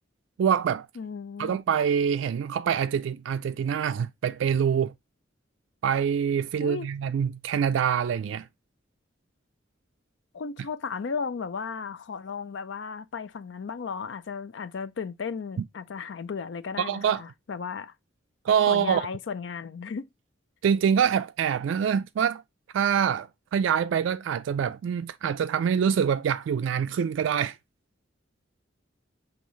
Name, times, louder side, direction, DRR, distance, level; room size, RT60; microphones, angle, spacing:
voice 1, 0.4-0.9 1.4-4.9 5.8-8.5 16.8-17.2 18.4-19.0 20.6-22.4 22.7-27.6, right 7 dB, 75° right, 0.3 m, -25 dB
voice 2, 1.0-1.6 6.6-6.9 10.3-17.9 18.7-20.1, left 5 dB, 65° left, 0.4 m, -35 dB
5.5 x 3.0 x 3.0 m
head